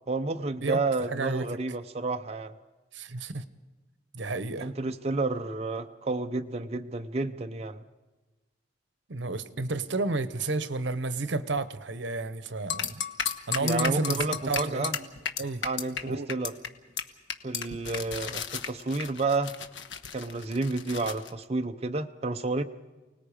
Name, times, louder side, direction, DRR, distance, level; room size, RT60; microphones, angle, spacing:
voice 1, 0.1-2.5 4.6-7.8 13.6-15.0 15.6-16.5 17.4-19.5 20.1-22.6, right 3 dB, 35° right, 0.6 m, -30 dB
voice 2, 1.1-1.5 2.9-3.4 4.1-4.7 9.1-13.0 13.5-15.1 15.4-15.6 16.1-16.3, right 3 dB, 75° right, 1.0 m, -31 dB
sound 1, 12.7-16.0 16.3-16.7 17.0-17.1 17.3-21.3, left 7 dB, 80° left, 1.3 m, -33 dB
29.0 x 19.0 x 5.1 m
head